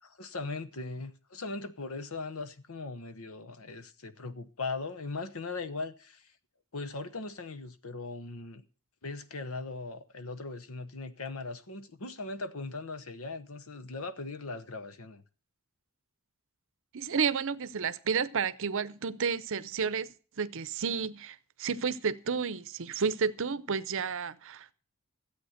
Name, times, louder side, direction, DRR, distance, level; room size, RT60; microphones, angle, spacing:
voice 1, 0.0-6.3 6.7-8.6 9.0-15.2, left 3 dB, 65° left, 1.0 m, -39 dB
voice 2, 16.9-24.7, right 6 dB, 60° right, 0.7 m, -31 dB
13.0 x 8.3 x 6.5 m
head